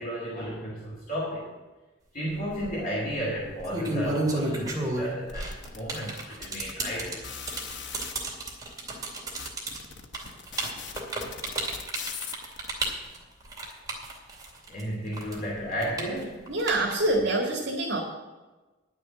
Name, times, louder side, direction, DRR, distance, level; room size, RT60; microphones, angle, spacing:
voice 1, 0.0-1.5 2.1-7.2 14.7-16.5, equal, 50° left, -4 dB, 2.6 m, -33 dB
sound 1, 2.4-2.7 3.5-14.8 15.1-17.2, right 2 dB, 20° right, 2.5 m, -32 dB
sound 2, 5.3-8.1 8.8-8.9 9.2-12.7, left 6 dB, 65° left, 1.1 m, -40 dB
voice 2, 16.5-18.0, right 2 dB, 65° right, -2 dB, 2.0 m, -26 dB
10.5 x 6.8 x 8.6 m, 1.2 s
head